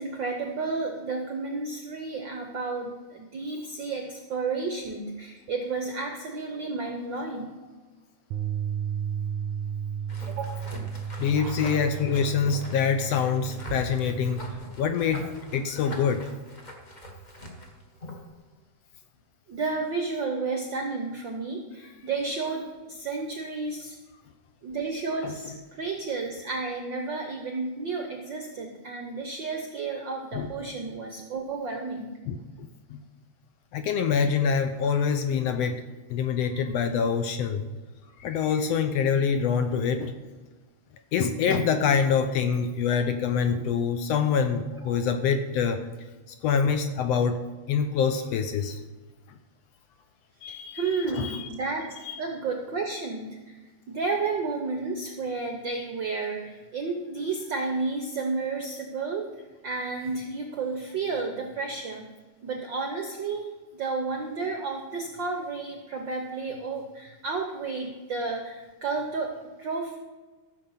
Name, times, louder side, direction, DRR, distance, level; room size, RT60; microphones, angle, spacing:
voice 1, 0.0-7.5 10.3-10.5 11.4-11.6 19.5-24.0 24.6-32.2 44.9-45.0 50.5-51.9 52.2-53.6 53.9-59.3 59.6-62.1 62.4-70.0, right 4 dB, 70° right, 3 dB, 1.1 m, -32 dB
Bass guitar, 8.3-14.6, right 8 dB, 85° right, 1.9 m, -34 dB
sound 1, 10.1-18.3, equal, 35° left, 0.7 m, -42 dB
voice 2, 11.2-14.4 14.8-16.3 25.2-25.3 30.3-30.5 32.3-32.4 32.9-33.0 33.7-35.8 36.1-37.6 38.2-40.1 41.1-45.9 46.4-47.4 47.7-48.8 50.4-51.5 52.0-52.2, left 6 dB, 75° left, 8 dB, 1.6 m, -25 dB
14.5 x 6.7 x 5.6 m, 1.3 s
omnidirectional pair, 3.3 m